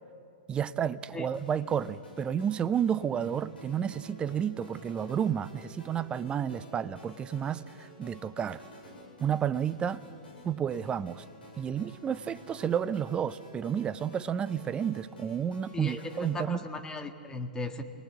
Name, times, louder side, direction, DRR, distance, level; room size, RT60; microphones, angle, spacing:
voice 1, 0.5-8.6 9.2-10.0 10.4-11.2 11.6-16.6, right 8 dB, 20° right, 16 dB, 0.6 m, -31 dB
sound 1, 1.3-16.3, left 1 dB, 85° left, 7.5 m, -51 dB
voice 2, 15.7-17.8, left 2 dB, 15° left, 5 dB, 1.7 m, -37 dB
27.5 x 20.0 x 8.3 m, 2.6 s
hypercardioid pair, 115°, 5 cm